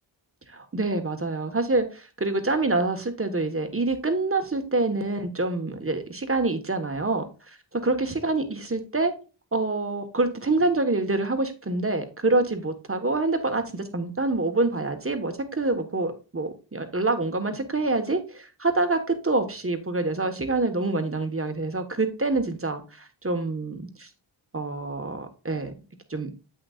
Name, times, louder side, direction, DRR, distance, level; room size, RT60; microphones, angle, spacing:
voice 1, 0.5-7.3 7.8-9.1 9.5-24.1 24.5-25.7 26.1-26.3, right 2 dB, 25° right, 1.4 m, -26 dB
7.8 x 6.4 x 2.5 m
cardioid pair, 60°, 48 cm